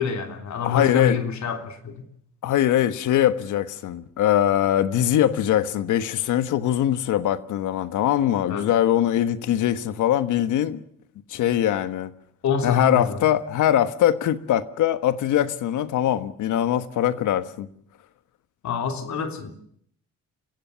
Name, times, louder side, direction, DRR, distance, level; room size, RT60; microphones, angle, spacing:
voice 1, 0.0-2.0 8.5-8.7 12.4-13.2 18.6-19.5, left 6 dB, 65° left, 3.3 m, -26 dB
voice 2, 0.6-1.2 2.4-10.8 11.3-12.1 12.6-17.7, left 11 dB, 80° left, 1.4 m, -22 dB
28.5 x 16.5 x 7.0 m
cardioid pair, 90°, 30 cm